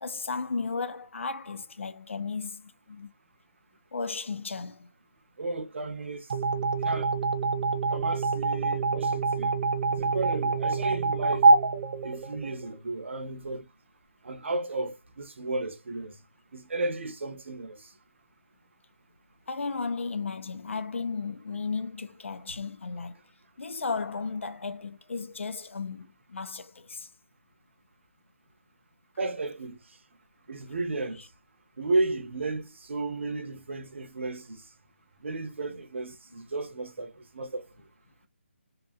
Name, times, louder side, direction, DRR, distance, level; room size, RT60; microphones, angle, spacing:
voice 1, 0.0-3.1 3.9-4.9 19.5-23.2 23.6-27.1 35.7-35.8, left 4 dB, 70° left, 0.5 m, -34 dB
voice 2, 5.4-6.3 6.8-7.1 7.9-9.6 9.9-11.5 12.0-13.6 14.2-16.1 16.5-17.9 29.2-29.8 30.5-31.2 31.8-34.6 35.2-37.7, right 2 dB, 65° right, 0.8 m, -33 dB
sound 1, 6.3-12.8, right 3 dB, 40° right, 0.4 m, -25 dB
2.7 x 2.5 x 2.4 m
hypercardioid pair, 165°, 7 cm